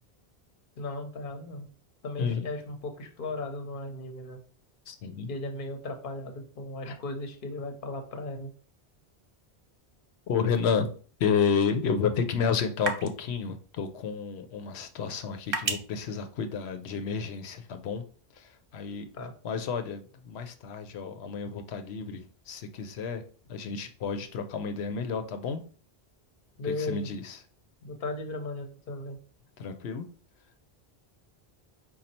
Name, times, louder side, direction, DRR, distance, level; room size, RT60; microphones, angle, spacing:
voice 1, 0.8-1.7 2.0-4.4 5.3-8.5 19.1-19.3 26.6-27.1 27.8-29.2, left 2 dB, 55° left, 5 dB, 1.0 m, -36 dB
voice 2, 4.9-5.3 6.9-7.0 10.3-10.9 11.2-18.0 18.3-19.1 19.4-23.2 23.5-25.6 26.8-27.4 29.6-30.1, left 6 dB, 90° left, 8 dB, 0.9 m, -31 dB
sound 1, 10.5-17.2, right 3 dB, 60° right, 1.0 m, -40 dB
5.1 x 2.3 x 4.3 m, 0.41 s
omnidirectional pair, 1.1 m